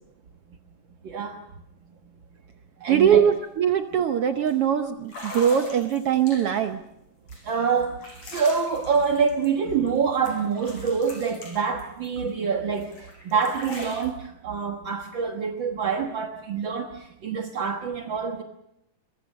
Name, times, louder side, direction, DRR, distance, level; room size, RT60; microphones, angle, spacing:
voice 1, 1.0-1.4 2.8-3.2 7.4-18.4, right 6 dB, 55° right, 4 dB, 1.3 m, -26 dB
voice 2, 2.9-6.8, right 8 dB, 80° right, 7 dB, 1.3 m, -22 dB
sound 1, 3.1-3.2 3.5-3.8 4.5-4.6 5.0-6.7 7.3-10.0 10.3-12.3 12.8-14.1, left 1 dB, 50° left, 6.5 m, -41 dB
23.0 x 23.0 x 6.5 m, 0.83 s
omnidirectional pair, 4.0 m